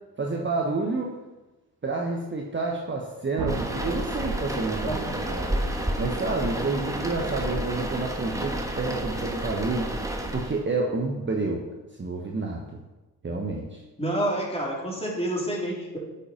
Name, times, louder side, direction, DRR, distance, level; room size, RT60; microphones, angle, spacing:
voice 1, 0.2-1.1 1.8-5.0 5.3-5.5 6.0-9.9 10.3-11.6 12.0-12.8 13.2-13.8, right 3 dB, 25° right, 0 dB, 1.3 m, -29 dB
sound 1, 3.4-11.4, right 3 dB, 55° right, 1.6 m, -41 dB
sound 2, 3.5-10.6, right 1 dB, 5° right, 1.4 m, -30 dB
voice 2, 4.9-5.3 14.0-16.0, right 1 dB, 10° left, -3 dB, 3.2 m, -29 dB
8.2 x 5.6 x 5.2 m, 1.1 s
hypercardioid pair, 50°, 47 cm